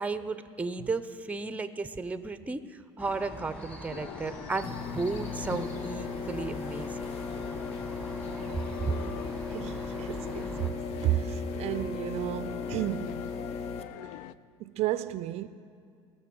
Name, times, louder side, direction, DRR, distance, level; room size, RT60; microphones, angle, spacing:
voice 1, 0.0-7.1 8.8-8.9, right 3 dB, 10° right, 0.6 m, -34 dB
sound 1, 3.0-10.7, equal, 5° left, 1.6 m, -44 dB
sound 2, 3.9-14.3, left 13 dB, 75° left, 0.4 m, -44 dB
sound 3, 4.6-13.8, left 4 dB, 55° left, 0.9 m, -37 dB
voice 2, 9.5-13.3 14.0-14.2 14.6-15.5, right 13 dB, 55° right, 0.4 m, -33 dB
19.5 x 6.8 x 6.1 m
supercardioid pair, 110°, 13 cm